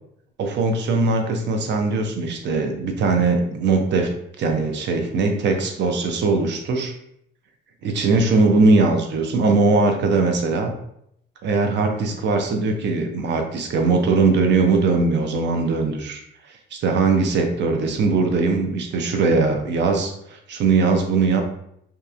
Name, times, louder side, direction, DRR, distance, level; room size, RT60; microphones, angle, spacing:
voice 1, 0.4-4.1 4.4-6.9 7.8-10.7 11.4-16.2 16.7-21.4, right 3 dB, 65° right, 4 dB, 0.5 m, -20 dB
2.8 x 2.3 x 2.4 m, 0.73 s
cardioid pair, 90°, 20 cm